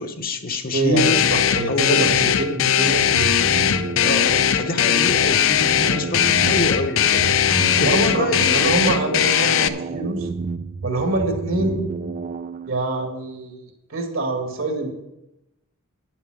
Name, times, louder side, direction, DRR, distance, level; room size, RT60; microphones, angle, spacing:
voice 1, 0.0-1.2 1.7-2.3 4.0-8.6, left 2 dB, 45° left, 7 dB, 0.9 m, -27 dB
voice 2, 0.7-3.3 5.9-6.1 7.8-10.3 10.8-11.8 12.7-13.6 13.9-14.9, right 2 dB, 65° right, 3 dB, 2.0 m, -25 dB
sound 1, 1.0-9.7, left 9 dB, 65° left, 0.5 m, -19 dB
sound 2, 3.1-13.1, right 4 dB, 35° right, 0.3 m, -31 dB
9.3 x 7.2 x 6.3 m, 0.92 s
head